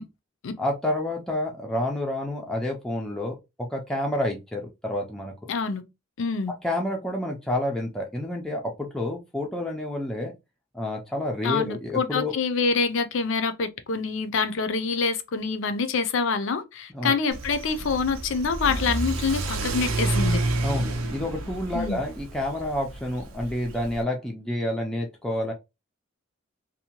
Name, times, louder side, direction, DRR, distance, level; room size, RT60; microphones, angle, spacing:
voice 1, 0.6-5.3 6.6-10.3 10.7-12.3 16.9-17.2 20.6-25.5, left 1 dB, 5° left, 0.3 m, -29 dB
voice 2, 5.5-5.8 6.2-6.5 11.4-20.4 21.7-22.0, left 4 dB, 65° left, 0.4 m, -26 dB
Car / Accelerating revving vroom, 17.3-24.0, right 2 dB, 80° right, 0.5 m, -29 dB
2.7 x 2.1 x 2.8 m
head